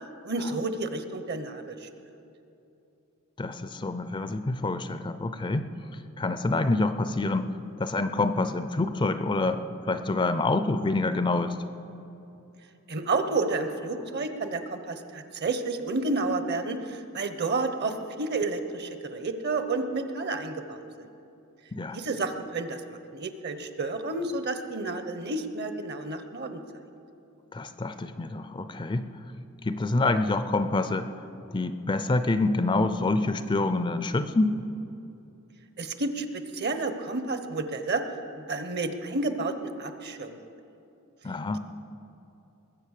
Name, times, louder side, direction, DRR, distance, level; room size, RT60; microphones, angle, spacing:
voice 1, 0.2-1.9 12.9-21.1 21.9-26.6 35.8-38.0 38.3-40.4, right 3 dB, 50° right, 9 dB, 0.9 m, -31 dB
voice 2, 3.4-5.7 6.2-7.5 7.8-9.6 9.9-11.6 21.7-22.0 27.5-29.1 29.6-31.1 31.5-34.5 41.2-41.6, left 2 dB, 20° left, 11 dB, 0.4 m, -26 dB
20.5 x 7.8 x 6.6 m, 2.8 s
head